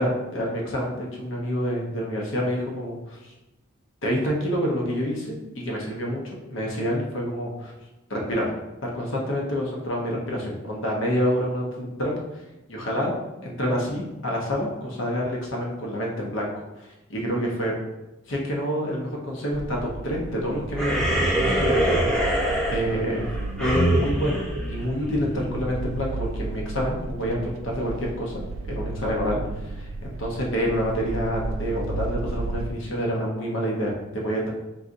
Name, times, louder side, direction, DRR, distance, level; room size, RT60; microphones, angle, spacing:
voice 1, 0.0-3.3 4.0-7.7 8.1-8.5 8.8-17.7 18.3-22.4 22.7-23.3 23.6-34.5, equal, 70° left, -2 dB, 0.9 m, -28 dB
sound 1, 19.5-32.7, right 2 dB, 70° right, 0.3 m, -33 dB
sound 2, 20.7-25.5, right 1 dB, 5° left, 0.7 m, -24 dB
4.2 x 3.8 x 2.6 m, 1.0 s
head